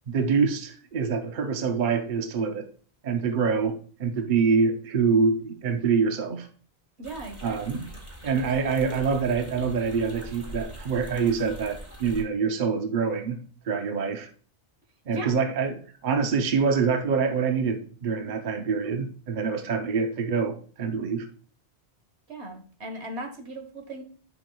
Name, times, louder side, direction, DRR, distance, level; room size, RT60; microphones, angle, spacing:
voice 1, 0.1-2.7 3.0-6.5 7.4-7.9 8.2-14.3 15.1-21.3, right 5 dB, 50° right, 0.8 m, -25 dB
sound 1, 7.0-12.2, equal, 25° right, 2.2 m, -42 dB
voice 2, 7.0-7.6 15.1-15.4 22.3-24.0, right 1 dB, 85° right, 1.6 m, -37 dB
10.5 x 5.8 x 2.3 m
omnidirectional pair, 1.1 m